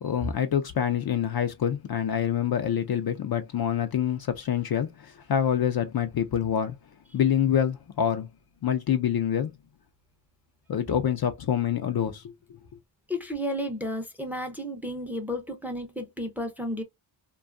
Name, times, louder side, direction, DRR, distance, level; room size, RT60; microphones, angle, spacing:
voice 1, 0.0-6.8 7.1-8.3 8.6-9.5 10.7-12.3, left 9 dB, 50° left, 0.4 m, -26 dB
voice 2, 13.1-16.8, equal, 5° right, 0.5 m, -32 dB
2.6 x 2.3 x 2.4 m
wide cardioid pair, 115°, 50 cm